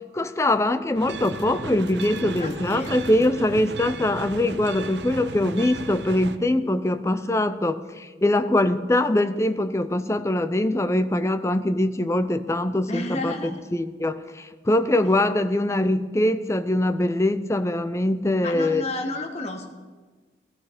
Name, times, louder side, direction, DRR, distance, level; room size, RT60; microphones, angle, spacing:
voice 1, 0.1-13.3 13.7-18.9, left 1 dB, 15° left, 11 dB, 0.5 m, -23 dB
sound 1, 0.9-6.4, right 3 dB, 70° right, 0.7 m, -36 dB
voice 2, 2.4-2.9 12.9-13.6 18.4-19.7, left 2 dB, 35° left, 3 dB, 1.2 m, -31 dB
16.5 x 14.0 x 5.0 m, 1.4 s
head